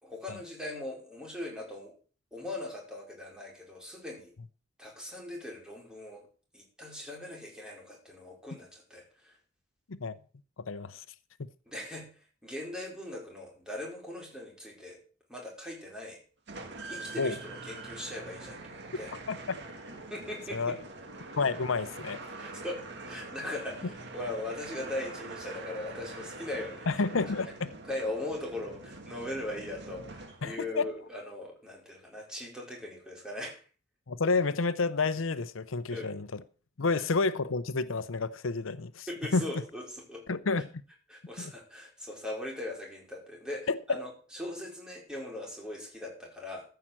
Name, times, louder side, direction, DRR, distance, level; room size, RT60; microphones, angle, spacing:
voice 1, 0.0-1.9 2.3-4.3 4.8-6.3 6.5-9.3 11.7-12.1 12.4-15.0 15.3-16.2 16.9-19.1 20.1-20.8 22.4-26.9 27.5-27.6 27.8-33.6 35.9-36.1 36.9-37.0 39.1-40.2 41.1-46.6, left 1 dB, 5° right, 4.5 m, -40 dB
voice 2, 10.6-11.0 17.2-17.4 19.3-19.6 20.5-20.8 21.4-22.2 26.9-27.7 30.4-30.8 34.1-36.3 36.8-39.1 39.3-39.5 40.3-40.7 41.4-41.5 43.7-43.8, left 4 dB, 90° left, 0.7 m, -30 dB
spooky warehouse door open, 16.5-30.7, right 3 dB, 60° right, 2.1 m, -44 dB
14.5 x 5.6 x 7.5 m
head